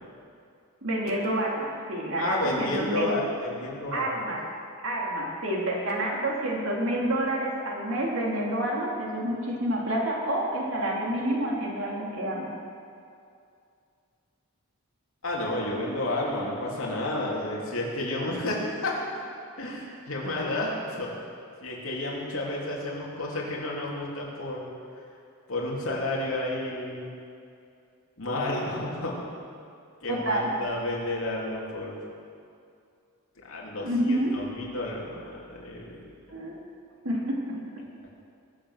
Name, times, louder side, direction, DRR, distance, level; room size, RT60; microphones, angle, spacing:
voice 1, 0.8-3.2 3.9-4.4 4.8-12.5 30.1-30.5 33.8-34.3 36.3-36.6 37.0-37.4, right 1 dB, 60° right, -2 dB, 2.8 m, -28 dB
voice 2, 2.2-4.1 15.2-19.0 19.6-21.1 21.6-24.7 25.5-27.1 28.2-29.2 30.0-32.0 33.4-36.0, left 1 dB, 65° left, -4 dB, 3.1 m, -31 dB
22.0 x 7.7 x 6.4 m, 2.4 s
head